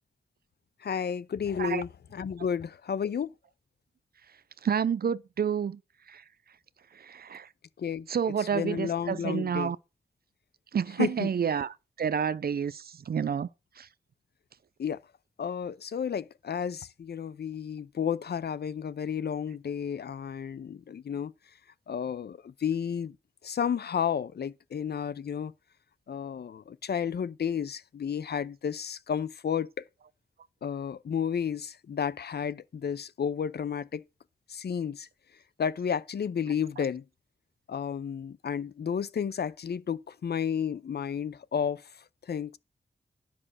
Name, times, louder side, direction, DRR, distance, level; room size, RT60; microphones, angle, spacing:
voice 1, 0.8-3.3 7.8-9.7 11.0-11.3 14.8-15.0 15.4-21.3 21.9-23.2 23.4-25.5 26.1-29.7 30.6-34.0 34.5-35.1 35.6-37.0 37.7-41.8 42.3-42.6, left 7 dB, 70° left, 0.5 m, -32 dB
voice 2, 4.6-5.8 6.1-6.2 7.0-7.5 8.1-9.8 10.7-13.5 13.8-13.9, right 7 dB, 65° right, 0.5 m, -29 dB
10.0 x 5.4 x 6.3 m
wide cardioid pair, 80°, 17 cm